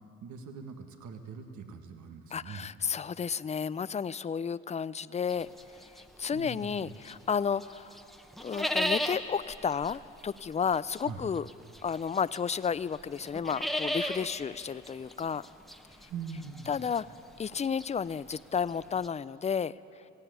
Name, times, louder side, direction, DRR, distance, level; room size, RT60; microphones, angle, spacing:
voice 1, 0.2-2.7 6.3-7.0 11.0-11.3 16.1-16.8, right 5 dB, 75° right, 6 dB, 1.6 m, -42 dB
voice 2, 2.3-5.5 6.2-7.9 8.4-11.5 11.8-15.4 16.7-17.0 17.4-19.7, left 6 dB, 25° left, 18 dB, 0.4 m, -32 dB
sound 1, 5.3-7.3 7.6-19.1, left 1 dB, ahead, 1.0 m, -36 dB
17.0 x 16.5 x 9.4 m, 2.7 s
cardioid pair, 90°, 30 cm